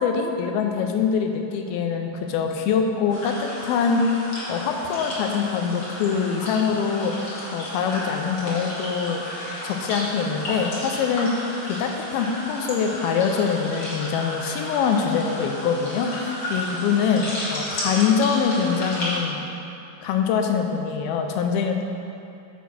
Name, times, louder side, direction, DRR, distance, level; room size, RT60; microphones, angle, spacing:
voice 1, 0.0-4.1 4.5-7.3 7.5-9.2 9.6-11.3 11.6-19.5 20.0-21.8, left 6 dB, 85° left, 4 dB, 2.5 m, -24 dB
sound 1, 3.1-19.2, left 1 dB, 40° left, 2.2 m, -33 dB
6.9 x 6.2 x 6.3 m, 2.8 s
omnidirectional pair, 4.3 m